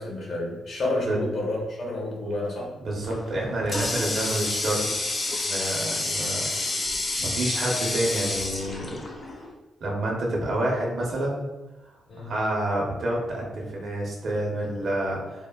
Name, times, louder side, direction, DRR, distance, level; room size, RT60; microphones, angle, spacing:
voice 1, 0.0-2.7 12.1-12.3, left 2 dB, 60° left, -2 dB, 0.8 m, -30 dB
voice 2, 2.8-4.9 5.4-6.5 7.2-9.0 9.8-11.5 12.2-15.5, right 1 dB, 60° right, -2 dB, 0.7 m, -28 dB
Water tap faucet, 3.0-9.5, left 2 dB, 35° left, 0.4 m, -29 dB
3.5 x 2.1 x 2.2 m, 1.1 s
cardioid pair, 105°, 0 cm